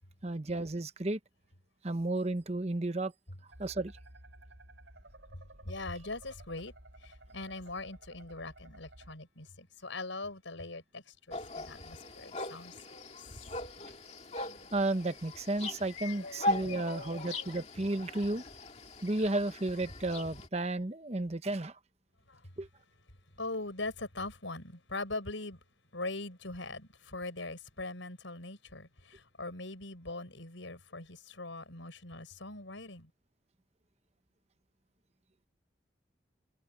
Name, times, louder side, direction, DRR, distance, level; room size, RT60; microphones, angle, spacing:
voice 1, 0.2-1.2 1.8-3.1 3.6-3.9 14.7-18.4 19.0-21.8 22.6-22.7, right 2 dB, 35° right, 0.9 m, -33 dB
sound 1, 3.5-9.1, right 1 dB, 75° right, 7.3 m, -54 dB
voice 2, 5.6-6.7 7.0-12.7 16.0-17.5 22.3-22.5 23.4-25.6 25.9-33.1, left 2 dB, 90° left, 6.7 m, -42 dB
sound 2, 11.3-20.5, left 2 dB, 35° left, 2.3 m, -40 dB
head